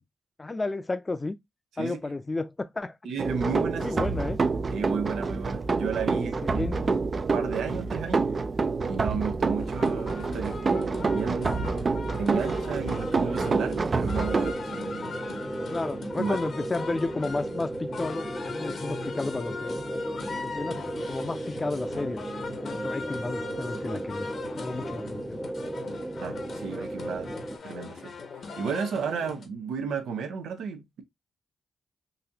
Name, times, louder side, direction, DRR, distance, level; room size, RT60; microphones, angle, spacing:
voice 1, 0.4-1.3 1.8-3.0 3.8-4.4 6.4-7.0 15.6-20.0 20.4-20.8 21.1-22.2 22.5-24.3 24.6-25.4, left 3 dB, 30° left, 0.6 m, -32 dB
voice 2, 3.0-4.0 4.7-6.6 7.3-8.3 8.8-11.6 12.2-15.2 16.2-16.4 26.2-27.3 27.6-28.1 28.6-31.0, right 6 dB, 85° right, 0.6 m, -33 dB
sound 1, 3.2-14.5, right 4 dB, 45° right, 0.4 m, -27 dB
sound 2, 9.6-29.5, left 4 dB, 65° left, 1.0 m, -40 dB
sound 3, 12.7-27.6, right 1 dB, 15° right, 0.8 m, -35 dB
4.0 x 2.6 x 2.7 m
cardioid pair, 60°, 0 cm